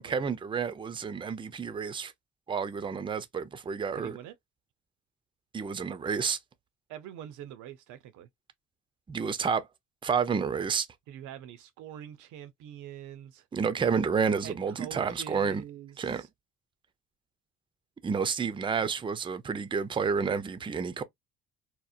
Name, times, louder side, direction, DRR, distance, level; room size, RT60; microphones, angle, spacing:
voice 1, 0.0-2.1 2.5-4.2 5.5-6.4 9.1-9.7 10.0-10.9 13.5-15.6 16.0-16.2 18.0-21.0, right 6 dB, 15° right, 0.4 m, -30 dB
voice 2, 4.0-4.3 6.9-8.3 11.1-13.5 14.4-16.3, right 10 dB, 75° right, 0.5 m, -45 dB
2.8 x 2.0 x 2.3 m
supercardioid pair, 70°, 31 cm